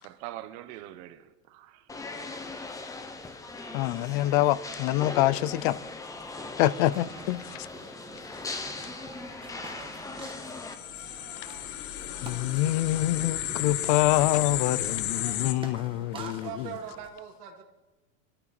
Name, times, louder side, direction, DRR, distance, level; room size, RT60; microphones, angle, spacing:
voice 1, 0.0-2.3, right 14 dB, 50° right, 1.2 m, -44 dB
sound 1, 1.9-10.7, left 3 dB, 5° left, 0.8 m, -39 dB
voice 2, 3.7-5.8 6.6-7.7 12.2-16.7, left 15 dB, 35° left, 0.4 m, -26 dB
sound 2, 6.8-17.1, right 3 dB, 10° right, 1.3 m, -49 dB
sound 3, 10.2-15.5, left 12 dB, 70° left, 1.4 m, -33 dB
voice 3, 16.1-17.6, right 7 dB, 80° right, 3.0 m, -40 dB
23.0 x 13.0 x 4.3 m
supercardioid pair, 160°, 46 cm